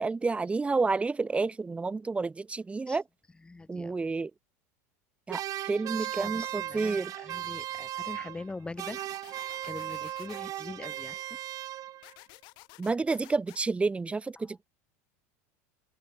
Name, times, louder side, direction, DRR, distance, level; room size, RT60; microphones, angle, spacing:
voice 1, 0.0-3.0 3.7-4.3 5.3-7.1 12.8-14.6, right 4 dB, 15° right, 1.3 m, -30 dB
voice 2, 3.4-3.9 6.1-9.0 9.3-11.4 14.4-14.5, left 3 dB, 10° left, 5.9 m, -43 dB
sound 1, 5.3-8.5 8.8-12.2, right 14 dB, 45° right, 1.8 m, -37 dB
sound 2, 8.8-10.4 12.0-13.6, left 26 dB, 60° left, 4.8 m, -52 dB
open air
supercardioid pair, 110°, 9 cm